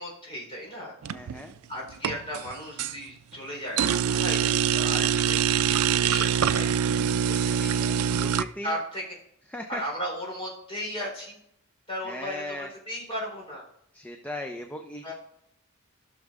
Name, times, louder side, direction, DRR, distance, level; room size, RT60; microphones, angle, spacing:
voice 1, 0.0-0.9 1.7-7.0 7.3-7.7 8.6-9.0 9.7-11.4 11.9-13.7 15.0-15.1, equal, 25° left, -2 dB, 3.9 m, -36 dB
sound 1, 1.0-1.5 1.9-2.9 3.8-8.4, right 8 dB, 75° right, 0.4 m, -24 dB
voice 2, 1.1-1.6 4.4-4.7 7.5-8.8 9.5-9.8 12.0-12.7 13.9-15.1, left 1 dB, 5° left, 4 dB, 0.5 m, -38 dB
16.0 x 6.4 x 2.5 m, 0.72 s
head